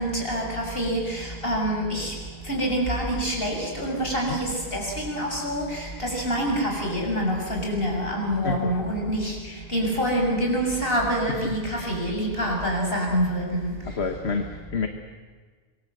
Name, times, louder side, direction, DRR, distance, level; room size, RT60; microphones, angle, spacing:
voice 1, 0.0-2.1 2.5-9.4 9.7-13.7, equal, 65° left, 0 dB, 7.1 m, -26 dB
voice 2, 14.0-14.9, left 4 dB, 80° left, 5 dB, 1.7 m, -28 dB
26.5 x 23.0 x 7.9 m, 1.5 s
omnidirectional pair, 1.1 m